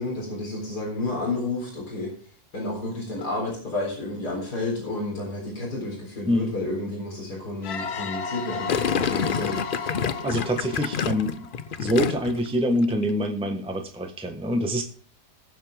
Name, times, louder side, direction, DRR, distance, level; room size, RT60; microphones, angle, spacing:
voice 1, 0.0-2.1 2.5-8.7 9.0-9.6, left 2 dB, 90° left, -1 dB, 4.6 m, -31 dB
sound 1, 7.6-12.2, left 4 dB, 70° left, 1.6 m, -34 dB
Gurgling, 8.7-12.5 12.7-13.1, left 7 dB, 50° left, 0.6 m, -27 dB
voice 2, 10.2-11.5 11.8-14.8, equal, 5° right, 3 dB, 1.3 m, -25 dB
19.5 x 7.5 x 3.6 m, 0.43 s
omnidirectional pair, 1.7 m